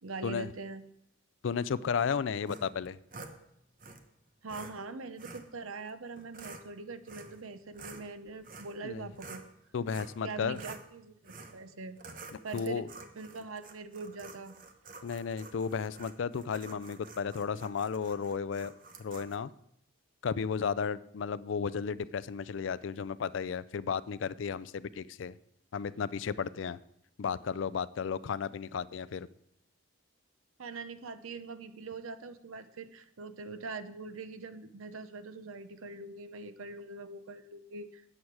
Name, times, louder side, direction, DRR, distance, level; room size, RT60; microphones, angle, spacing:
voice 1, 0.0-0.8 4.4-9.4 10.2-12.0 12.4-12.8 13.2-14.5 30.6-38.0, right 3 dB, 85° right, 11 dB, 0.8 m, -43 dB
voice 2, 1.4-3.0 8.8-9.1 9.7-10.6 12.3-12.9 15.0-18.7 19.0-19.5 20.2-25.3 25.7-26.8 27.2-29.3, left 6 dB, 70° left, 17 dB, 0.4 m, -34 dB
sound 1, 2.5-3.4 3.8-4.0 4.5-4.7 5.2-5.5 6.1-6.6 7.1-7.4 7.7-9.5 9.9-10.2 10.5-10.9 11.2-11.6 12.0-19.4, right 3 dB, 40° right, 0.9 m, -49 dB
12.5 x 8.6 x 4.7 m, 0.77 s
head